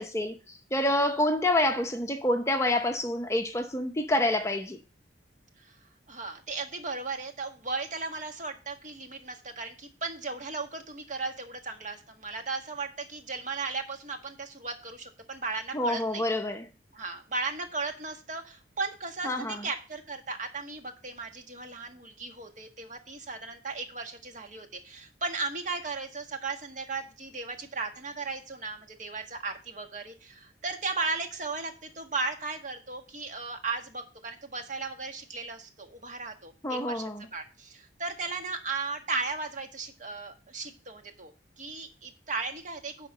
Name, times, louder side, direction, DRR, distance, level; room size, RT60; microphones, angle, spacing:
voice 1, 0.0-4.8 15.7-16.7 19.2-19.6 36.6-37.3, left 1 dB, 15° left, 0.8 m, -27 dB
voice 2, 6.1-16.2 16.9-41.3 41.6-43.1, right 3 dB, 45° right, 1.5 m, -36 dB
10.5 x 3.8 x 7.3 m
head